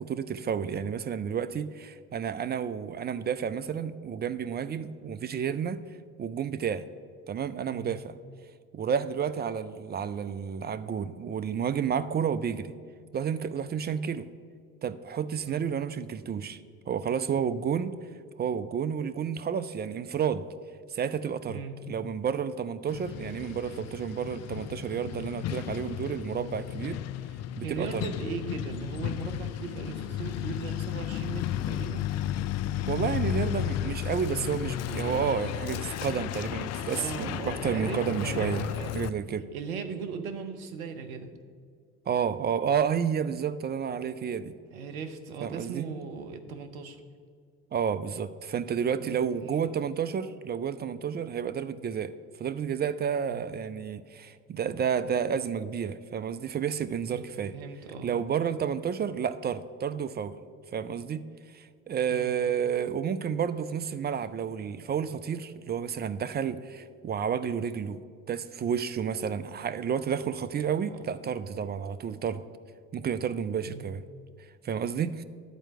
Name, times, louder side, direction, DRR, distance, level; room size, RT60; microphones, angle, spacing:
voice 1, 0.0-5.8 6.2-6.9 7.3-8.2 8.7-12.8 13.1-14.3 14.8-16.6 16.9-18.0 18.4-20.5 20.9-21.6 21.9-27.0 27.6-28.1 32.9-39.5 42.1-44.5 45.4-45.9 47.7-52.1 52.4-57.5 58.0-60.4 60.7-68.0 68.3-72.4 72.9-74.0 74.6-75.2, right 7 dB, 25° right, 13 dB, 0.4 m, -31 dB
voice 2, 7.7-8.0 15.4-15.7 21.5-21.8 27.6-32.1 36.9-39.0 39.5-41.3 44.7-47.0 49.0-49.7 53.3-53.4 57.1-57.2 57.5-58.1 62.1-62.3 70.8-71.0 73.6-73.9, right 5 dB, 80° right, 8 dB, 0.9 m, -39 dB
Truck, 22.9-39.1, left 11 dB, 40° left, 0.4 m, -33 dB
10.5 x 4.5 x 7.6 m, 2.1 s
hypercardioid pair, 60°, 42 cm